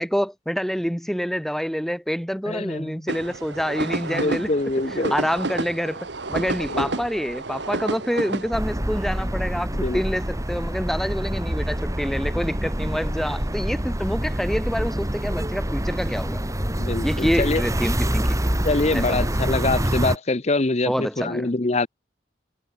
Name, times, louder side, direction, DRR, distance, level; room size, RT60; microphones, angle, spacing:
voice 1, 0.0-4.5 5.0-16.4 17.0-18.4 18.9-19.2 20.9-21.5, equal, ahead, 4.0 m, -27 dB
voice 2, 2.5-3.0 4.1-5.1 6.7-6.9 9.7-10.0 16.8-17.6 18.6-21.9, left 2 dB, 35° left, 0.8 m, -24 dB
sound 1, 3.1-8.5, right 2 dB, 70° right, 1.7 m, -30 dB
sound 2, 8.5-20.2, equal, 15° right, 2.7 m, -26 dB
head